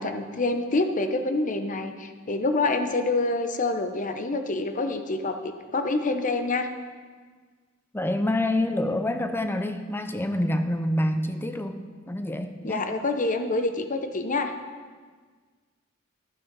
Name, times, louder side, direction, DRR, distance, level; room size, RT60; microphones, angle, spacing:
voice 1, 0.0-6.7 12.6-14.5, left 2 dB, 40° left, 7 dB, 0.8 m, -27 dB
voice 2, 7.9-12.8, left 1 dB, 10° left, 8 dB, 0.6 m, -27 dB
12.0 x 6.9 x 5.3 m, 1.5 s
head